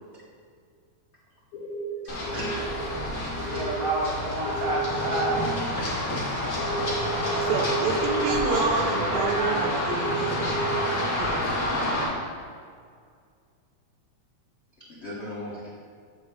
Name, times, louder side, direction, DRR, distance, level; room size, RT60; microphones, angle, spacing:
sound 1, 1.5-3.0 3.4-3.9 4.5-10.8 11.6-11.9, right 2 dB, 90° left, 2.2 m, -33 dB
voice 1, 2.0-2.5 3.4-3.8 5.8-5.9 14.9-15.7, equal, 70° left, -7 dB, 0.6 m, -38 dB
Run, 2.1-12.0, left 1 dB, 55° left, 2.7 m, -29 dB
voice 2, 3.5-5.4 8.3-9.8, right 1 dB, 10° right, -7 dB, 1.0 m, -29 dB
voice 3, 7.4-11.4, right 4 dB, 85° right, 3 dB, 2.0 m, -29 dB
8.7 x 7.9 x 2.4 m, 2.1 s
omnidirectional pair, 3.3 m